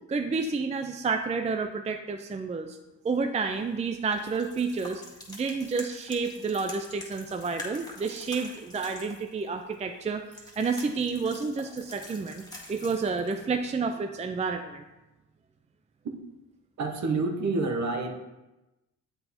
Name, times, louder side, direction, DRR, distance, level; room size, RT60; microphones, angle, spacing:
voice 1, 0.1-2.8 3.0-5.0 5.3-12.4 12.7-14.8, right 4 dB, 20° right, 6 dB, 0.4 m, -30 dB
sound 1, 3.4-13.7, left 1 dB, 10° left, 2.0 m, -46 dB
voice 2, 16.8-18.2, right 3 dB, 50° right, 4 dB, 1.1 m, -28 dB
7.8 x 3.9 x 4.2 m, 1.0 s
supercardioid pair, 70°, 35 cm